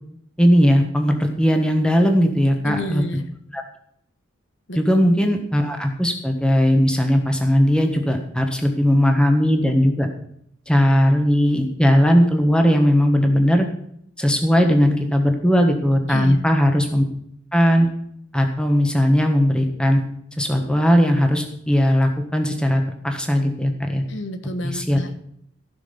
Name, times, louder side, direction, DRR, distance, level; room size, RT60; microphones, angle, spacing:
voice 1, 0.4-3.0 3.5-3.6 4.7-10.1 10.7-13.7 14.2-17.0 17.5-17.9 18.3-20.0 20.4-24.0 24.6-25.0, equal, 5° left, 4 dB, 1.4 m, -18 dB
voice 2, 2.6-3.3 4.7-4.8 16.1-16.4 24.1-25.2, left 1 dB, 70° left, 9 dB, 1.3 m, -29 dB
15.0 x 6.2 x 7.0 m, 0.71 s
head